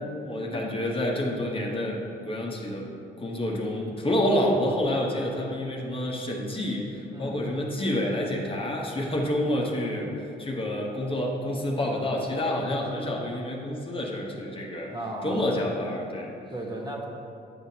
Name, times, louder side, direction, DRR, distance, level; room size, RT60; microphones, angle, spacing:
voice 1, 0.2-2.9 3.2-10.1 10.4-14.9 15.2-16.3, left 1 dB, 25° left, -1 dB, 1.0 m, -28 dB
voice 2, 11.7-12.0 14.9-15.5 16.5-17.1, right 1 dB, 20° right, -2 dB, 1.0 m, -36 dB
9.4 x 5.6 x 2.8 m, 2.7 s
cardioid pair, 90°, 20 cm